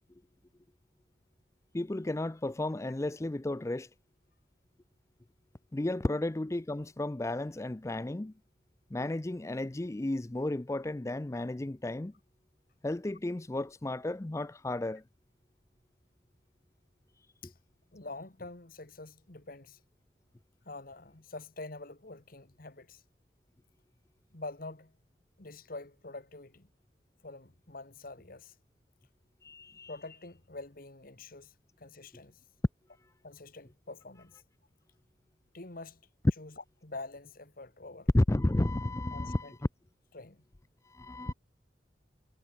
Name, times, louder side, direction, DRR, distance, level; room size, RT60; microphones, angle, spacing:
voice 1, 1.7-3.9 5.7-8.3 8.9-12.1 12.8-15.0 17.4-17.5 29.4-29.9 38.1-39.6 40.9-41.3, left 1 dB, 15° left, 0.4 m, -33 dB
voice 2, 17.9-19.8 20.7-23.0 24.3-25.0 25.4-26.7 27.2-28.6 29.9-32.4 33.2-34.4 35.5-36.0 36.4-38.1 39.1-39.5 40.1-40.4 41.2-41.3, left 3 dB, 50° left, 1.7 m, -46 dB
head